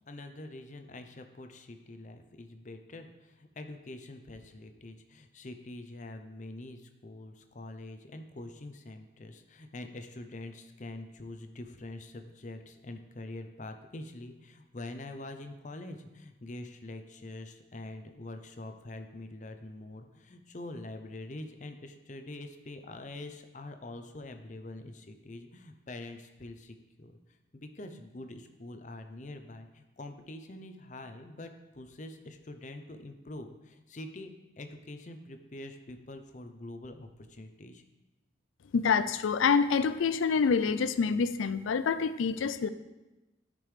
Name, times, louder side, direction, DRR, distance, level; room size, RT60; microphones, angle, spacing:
voice 1, 0.1-27.2 27.5-34.3 34.6-37.8, left 2 dB, 40° left, 7 dB, 0.6 m, -45 dB
voice 2, 38.7-42.7, left 5 dB, 90° left, 13 dB, 0.4 m, -27 dB
12.5 x 5.2 x 3.3 m, 1.0 s
head